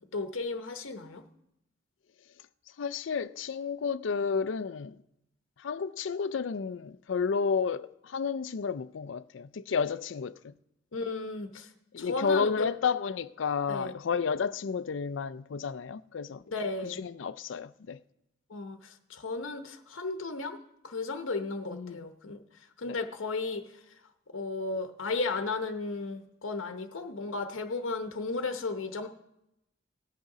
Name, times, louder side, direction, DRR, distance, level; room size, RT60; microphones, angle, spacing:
voice 1, 0.1-1.2 10.9-11.7 12.0-12.7 13.7-13.9 16.5-17.0 18.5-20.6 20.8-22.4 22.8-23.7 24.3-29.1, left 3 dB, 90° left, 0.9 m, -34 dB
voice 2, 2.8-5.0 5.6-10.5 11.9-16.4 16.8-18.0 21.7-22.1 22.8-23.0, left 5 dB, 70° left, 0.4 m, -31 dB
18.0 x 6.6 x 4.9 m
head